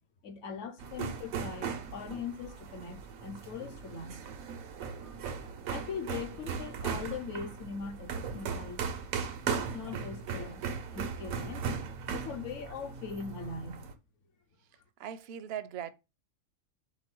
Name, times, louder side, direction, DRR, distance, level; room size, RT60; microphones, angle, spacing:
voice 1, 0.2-4.2 5.7-8.8 9.6-11.7 12.1-13.8, left 5 dB, 65° left, 1.0 m, -41 dB
sound 1, 0.8-13.9, right 6 dB, 90° right, 1.1 m, -38 dB
voice 2, 15.0-15.9, right 9 dB, 65° right, 0.7 m, -39 dB
3.8 x 3.0 x 4.4 m
omnidirectional pair, 1.4 m